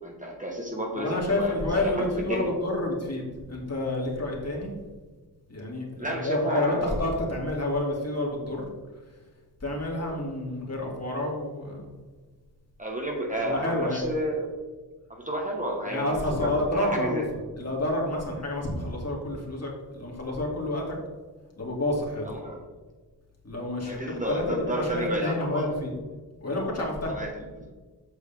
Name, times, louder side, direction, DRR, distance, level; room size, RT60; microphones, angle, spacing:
voice 1, 0.0-2.5 6.0-7.0 12.8-14.5 15.1-17.3 22.2-22.6 23.8-25.7 27.1-27.6, equal, 20° right, -1 dB, 1.4 m, -31 dB
voice 2, 1.0-4.7 5.5-8.7 9.6-11.9 13.4-14.0 15.9-17.2 17.6-21.0 21.6-22.2 23.4-25.9 26.4-27.1, left 1 dB, 40° left, -2 dB, 2.5 m, -29 dB
8.3 x 6.3 x 3.5 m, 1.3 s
wide cardioid pair, 70°, 38 cm